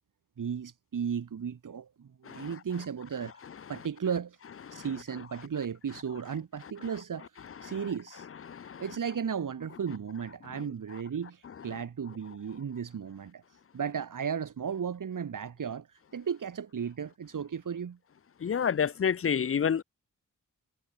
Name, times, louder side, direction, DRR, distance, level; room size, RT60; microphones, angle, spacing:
voice 1, 0.4-3.4 3.7-4.4 4.7-8.3 8.8-13.4 13.7-18.0, right 7 dB, 70° right, 4.0 m, -35 dB
voice 2, 8.5-8.8 18.4-19.8, left 7 dB, 40° left, 0.6 m, -28 dB
wide cardioid pair, 175°, 33 cm